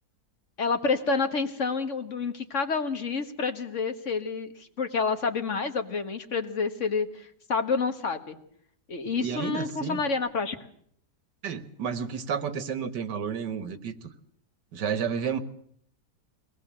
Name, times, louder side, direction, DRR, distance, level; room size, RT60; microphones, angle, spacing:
voice 1, 0.6-8.4 8.9-10.6, left 4 dB, 45° left, 8 dB, 1.8 m, -29 dB
voice 2, 9.2-10.0 11.4-14.1 14.7-15.4, right 7 dB, 75° right, 12 dB, 1.9 m, -31 dB
23.0 x 18.5 x 7.5 m, 0.66 s
omnidirectional pair, 1.9 m